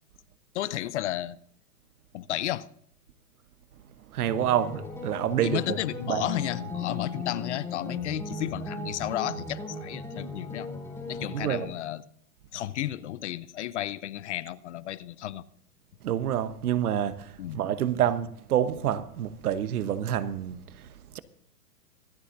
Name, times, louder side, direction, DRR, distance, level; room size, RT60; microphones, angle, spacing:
voice 1, 0.5-1.4 2.1-2.7 5.4-10.7 11.1-12.0 12.5-15.4 17.4-17.6, left 13 dB, 50° left, 0.6 m, -33 dB
voice 2, 4.1-5.8 6.1-6.2 11.3-11.7 16.0-17.1 17.5-20.6, right 10 dB, 70° right, 1.1 m, -27 dB
sound 1, 4.3-11.6, left 3 dB, 5° left, 3.2 m, -37 dB
25.0 x 8.3 x 2.6 m
hypercardioid pair, 150°, 47 cm